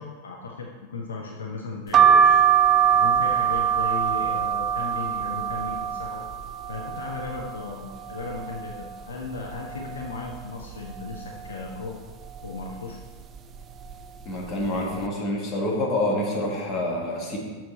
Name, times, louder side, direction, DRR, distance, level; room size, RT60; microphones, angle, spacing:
voice 1, 0.0-2.4 2.9-6.2 6.7-11.9 12.4-13.0, left 3 dB, 65° left, 0 dB, 0.7 m, -36 dB
sound 1, 1.9-7.6 8.1-8.8 9.2-9.3 9.5-10.6 11.1-11.5 12.2-12.6 13.4-13.6 13.9-14.1, right 8 dB, 25° right, 0.4 m, -22 dB
voice 2, 14.2-17.4, left 1 dB, 30° left, -1 dB, 1.6 m, -27 dB
6.6 x 6.1 x 4.1 m, 1.4 s
figure-of-eight pair, 90°, 0 cm